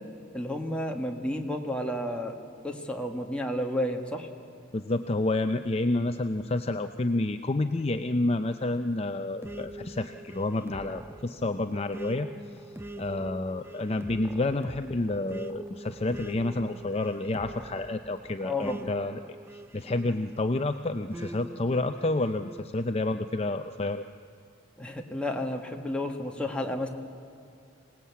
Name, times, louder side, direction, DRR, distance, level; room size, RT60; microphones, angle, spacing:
voice 1, 0.3-2.4 2.6-4.3 18.4-18.8 24.8-26.9, left 1 dB, 5° left, 1 dB, 1.7 m, -31 dB
voice 2, 4.7-12.3 13.0-19.2 19.5-24.0, left 2 dB, 30° left, 8 dB, 0.6 m, -29 dB
sound 1, 9.4-20.5 21.1-22.7, right 1 dB, 10° right, 0.6 m, -43 dB
26.0 x 18.5 x 8.4 m, 2.6 s
head